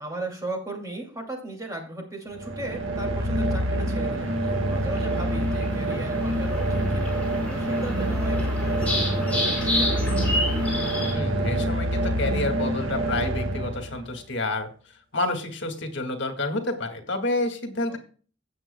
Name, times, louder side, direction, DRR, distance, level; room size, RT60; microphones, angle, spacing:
voice 1, 0.0-10.3 17.9-18.0, right 2 dB, 15° right, 0 dB, 2.4 m, -37 dB
sound 1, 2.3-14.2, right 1 dB, 75° right, 1.7 m, -26 dB
sound 2, 4.3-11.1, left 1 dB, 5° left, 4.8 m, -31 dB
voice 2, 11.1-18.0, left 2 dB, 60° left, 5 dB, 1.9 m, -29 dB
17.0 x 7.7 x 2.2 m, 0.41 s
head